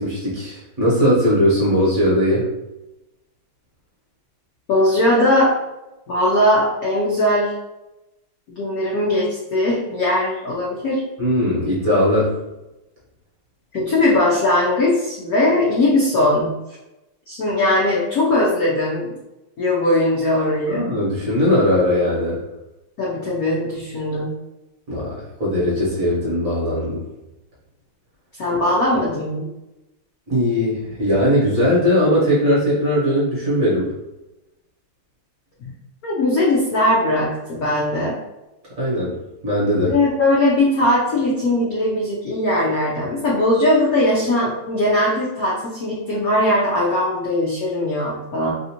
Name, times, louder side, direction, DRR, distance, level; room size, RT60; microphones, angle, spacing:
voice 1, 0.0-2.5 11.2-12.4 20.7-22.4 24.9-27.0 30.3-33.9 38.8-39.2 39.4-39.9, equal, 45° right, -7 dB, 1.3 m, -19 dB
voice 2, 4.7-5.5 6.1-7.6 8.6-11.0 13.7-16.5 17.3-19.2 19.6-20.8 23.0-24.3 28.4-29.5 35.6-35.7 36.0-38.2 39.8-48.5, left 1 dB, 75° left, -5 dB, 0.8 m, -19 dB
3.4 x 2.5 x 2.8 m, 0.96 s
omnidirectional pair, 2.3 m